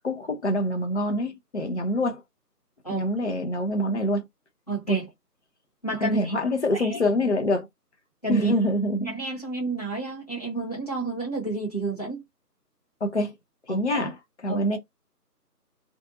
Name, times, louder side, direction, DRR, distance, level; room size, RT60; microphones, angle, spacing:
voice 1, 0.0-2.2 2.9-4.3 4.9-5.0 6.0-7.7 8.3-9.1 13.0-13.3 13.7-14.2 14.4-14.8, left 1 dB, 45° left, 0.5 m, -25 dB
voice 2, 4.7-5.1 5.8-6.4 6.7-7.0 8.2-8.5 9.0-12.2 13.7-14.0 14.5-14.6, right 3 dB, 25° left, 0.9 m, -30 dB
2.5 x 2.3 x 2.7 m
figure-of-eight pair, 160°, 49 cm